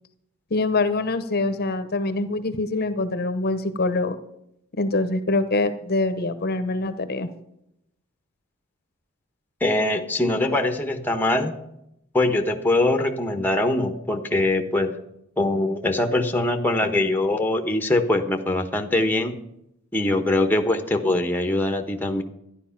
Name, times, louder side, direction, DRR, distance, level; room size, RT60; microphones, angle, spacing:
voice 1, 0.5-4.2 4.8-7.3, left 2 dB, 50° left, 11 dB, 0.9 m, -24 dB
voice 2, 9.6-11.5 12.1-14.9 15.4-19.4 19.9-22.2, left 2 dB, 10° left, 6 dB, 1.1 m, -22 dB
12.5 x 10.5 x 5.8 m, 0.80 s
head